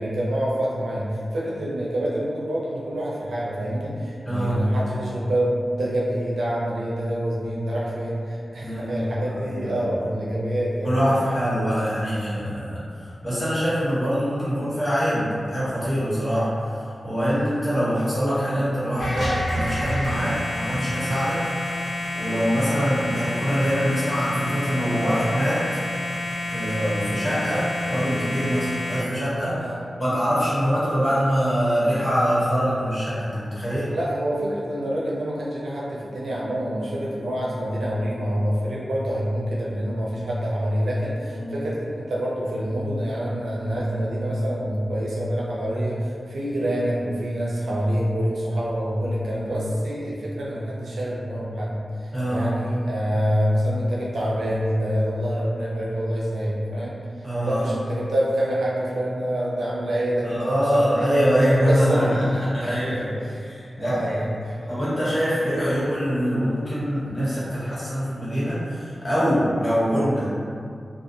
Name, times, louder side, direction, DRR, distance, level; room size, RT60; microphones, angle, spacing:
voice 1, 0.0-11.0 29.6-29.8 33.9-56.9 57.4-60.4 60.7-61.1 61.4-62.2 62.6-62.7 63.2-63.4 63.8-64.7, equal, 90° right, -6 dB, 0.5 m, -26 dB
voice 2, 4.2-4.6 8.6-10.1 10.8-25.6 26.5-29.7 30.0-33.9 41.3-41.5 52.1-52.5 57.2-57.7 60.2-62.1 62.4-64.2 64.7-70.3, equal, 50° left, -11 dB, 1.4 m, -24 dB
sound 1, 19.0-29.0, left 1 dB, 85° left, 0.5 m, -29 dB
2.5 x 2.4 x 2.6 m, 2.4 s
cardioid pair, 40°, 0 cm